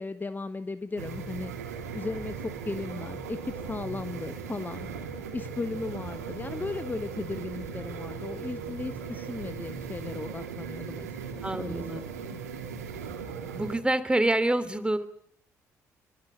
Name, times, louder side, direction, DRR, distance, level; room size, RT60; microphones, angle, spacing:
voice 1, 0.0-1.5 1.9-4.9 5.3-12.4, left 3 dB, 20° left, 11 dB, 1.4 m, -36 dB
sound 1, 1.0-13.8, right 5 dB, 80° right, 3.7 m, -38 dB
voice 2, 11.4-12.1 13.5-15.1, right 1 dB, 10° right, 13 dB, 3.1 m, -27 dB
25.0 x 24.5 x 8.7 m, 0.67 s
figure-of-eight pair, 45°, 8 cm